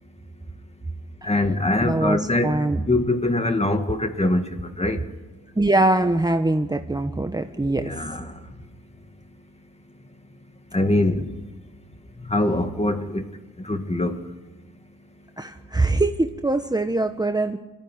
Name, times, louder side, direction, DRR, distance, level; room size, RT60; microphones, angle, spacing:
voice 1, 1.2-5.0 7.6-8.4 10.7-11.3 12.2-13.3 13.6-14.2, left 2 dB, 20° left, 7 dB, 2.1 m, -23 dB
voice 2, 1.8-2.8 5.6-7.9 15.4-17.6, right 2 dB, 10° right, 6 dB, 1.2 m, -22 dB
24.0 x 15.0 x 9.8 m, 1.2 s
cardioid pair, 75°, 34 cm